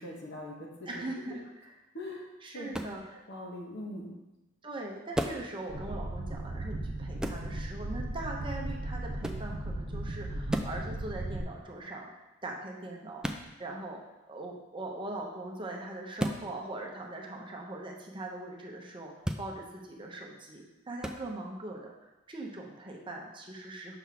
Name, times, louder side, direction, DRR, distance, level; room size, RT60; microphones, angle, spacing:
voice 1, 0.0-1.0 1.9-2.3 2.5-2.7 3.3-4.1, left 1 dB, 55° left, -1 dB, 1.2 m, -41 dB
voice 2, 0.8-1.8 2.4-3.2 4.6-12.1 12.4-14.0 14.3-19.1 19.4-24.0, right 2 dB, 25° right, 0 dB, 0.7 m, -41 dB
sound 1, 2.7-3.0 5.1-5.5 7.2-7.5 9.2-9.5 10.5-10.8 13.2-13.5 16.2-16.4 19.2-19.5 21.0-21.2, equal, 5° right, 0.3 m, -33 dB
sound 2, 5.7-11.4, right 1 dB, 65° right, 0.8 m, -36 dB
5.9 x 3.5 x 5.8 m, 1.0 s
head